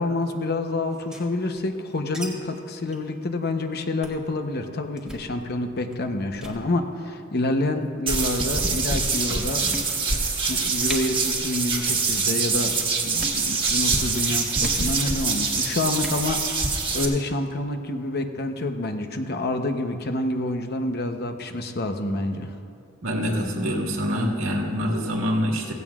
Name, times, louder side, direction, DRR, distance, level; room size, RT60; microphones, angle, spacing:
voice 1, 0.0-9.7 10.5-22.5, left 2 dB, 55° left, 6 dB, 0.9 m, -28 dB
sound 1, 0.9-2.3 2.5-2.6 2.9-3.1 3.4-3.6 4.0-4.3 5.0-5.3 5.9-6.1 6.3-6.6 7.5-7.9 8.6-8.7 9.2-9.3 9.7-10.3 10.5-10.6 10.8-11.0 11.6-11.9 12.2-12.6 13.1-13.4 14.6-14.8 15.9-16.2, equal, 5° right, 1.5 m, -38 dB
sound 2, 8.1-17.0, right 4 dB, 25° right, 1.5 m, -25 dB
voice 2, 23.0-25.7, equal, 85° right, -1 dB, 1.8 m, -25 dB
16.0 x 16.0 x 2.5 m, 2.5 s
head